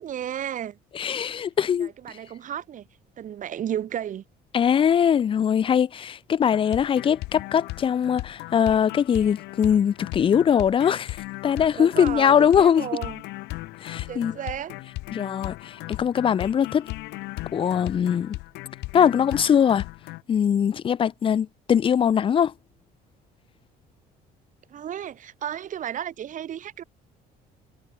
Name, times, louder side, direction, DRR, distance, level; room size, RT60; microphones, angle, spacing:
voice 1, 0.0-0.8 1.8-2.9 3.2-4.2 11.8-13.2 14.1-14.7 24.7-26.8, right 10 dB, 50° right, 1.2 m, -33 dB
voice 2, 1.0-1.9 4.5-12.8 13.8-14.3 15.1-16.9 17.5-18.4 18.9-19.8 20.3-22.5, left 8 dB, 30° left, 0.4 m, -21 dB
sound 1, 6.5-20.2, left 21 dB, 90° left, 1.1 m, -37 dB
cardioid pair, 110°, 17 cm